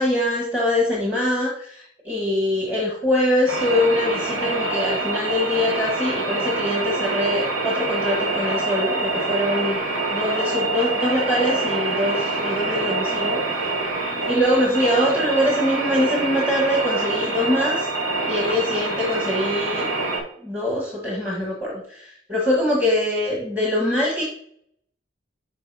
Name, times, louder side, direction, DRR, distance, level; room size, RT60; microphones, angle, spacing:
voice 1, 0.0-13.7 14.3-17.9 18.2-19.9 20.4-24.2, left 1 dB, 10° right, -3 dB, 1.4 m, -23 dB
sound 1, 3.5-20.2, right 2 dB, 75° right, 2.3 m, -25 dB
11.5 x 4.4 x 2.8 m, 0.64 s
head